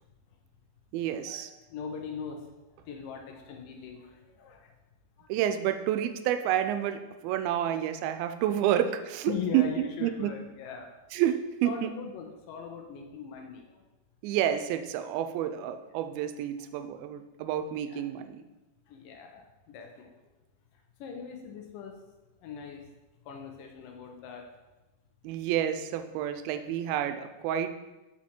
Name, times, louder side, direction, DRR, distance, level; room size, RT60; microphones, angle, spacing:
voice 1, 0.9-1.5 5.3-10.3 11.1-11.9 14.2-18.4 25.2-27.7, right 11 dB, 85° right, 9 dB, 2.4 m, -29 dB
voice 2, 1.7-2.5 2.8-4.7 5.2-5.3 9.3-10.9 11.6-13.8 17.9-18.0 18.9-20.1 21.0-22.0 22.4-22.8 23.3-24.4, left 6 dB, 75° left, 3 dB, 2.2 m, -40 dB
6.1 x 5.7 x 4.3 m, 1.1 s
omnidirectional pair, 4.3 m